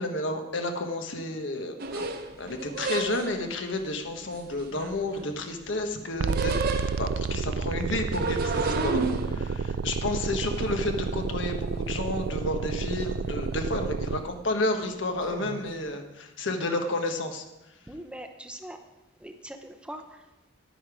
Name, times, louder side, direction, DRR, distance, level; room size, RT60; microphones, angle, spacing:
voice 1, 0.0-2.0 2.4-6.5 7.0-17.4, left 2 dB, 75° left, 5 dB, 1.4 m, -31 dB
sound 1, 1.8-3.5 4.2-5.5 5.8-7.3 8.0-11.7 12.0-12.7 13.0-13.6 13.9-14.2 15.2-15.6, right 3 dB, 50° right, 1.0 m, -33 dB
sound 2, 6.2-14.2, right 5 dB, 75° right, 0.4 m, -30 dB
voice 2, 17.9-18.8 19.2-20.2, right 1 dB, 5° right, 6 dB, 0.6 m, -42 dB
10.5 x 9.9 x 5.0 m, 1.0 s
head